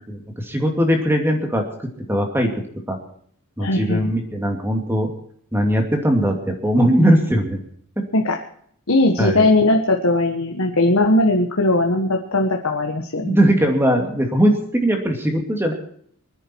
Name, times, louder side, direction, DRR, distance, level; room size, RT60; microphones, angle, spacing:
voice 1, 0.4-1.6 2.1-2.5 2.9-3.0 3.6-5.1 5.5-7.6 9.2-9.5 13.2-15.7, equal, 10° right, 2 dB, 2.6 m, -19 dB
voice 2, 3.6-4.1 8.1-8.4 8.9-13.4, left 2 dB, 70° left, 2 dB, 1.5 m, -19 dB
24.5 x 10.0 x 4.6 m, 0.63 s
head